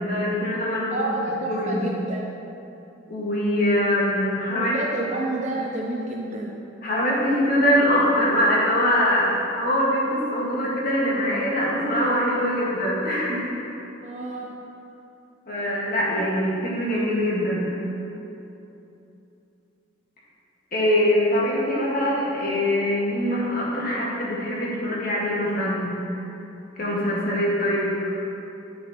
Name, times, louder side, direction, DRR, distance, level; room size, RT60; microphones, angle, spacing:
voice 1, 0.0-1.1 1.5-1.8 3.1-4.7 6.8-13.5 15.5-17.7 20.7-26.2 26.8-28.1, equal, 50° left, -5 dB, 1.8 m, -23 dB
voice 2, 0.9-2.2 4.5-6.6 14.0-14.5, right 2 dB, 40° right, -2 dB, 0.6 m, -29 dB
9.2 x 7.6 x 3.1 m, 2.9 s
head